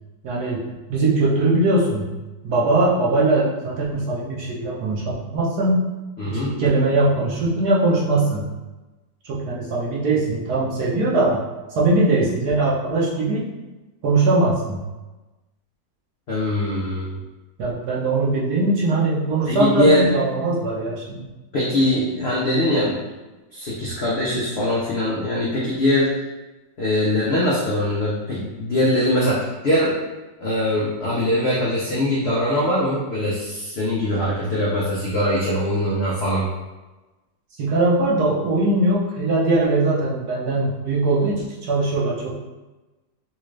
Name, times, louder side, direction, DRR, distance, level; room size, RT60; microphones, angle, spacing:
voice 1, 0.2-2.2 2.4-5.8 6.3-8.5 9.2-11.4 11.8-13.5 14.0-14.9 17.6-21.2 37.6-42.3, right 2 dB, 65° right, -5 dB, 1.2 m, -21 dB
voice 2, 6.2-6.6 16.3-17.2 19.5-20.1 21.5-23.0 23.5-26.1 26.8-30.0 30.4-36.5, left 1 dB, 85° left, -6 dB, 0.5 m, -22 dB
4.1 x 2.4 x 3.1 m, 1.1 s
omnidirectional pair, 2.0 m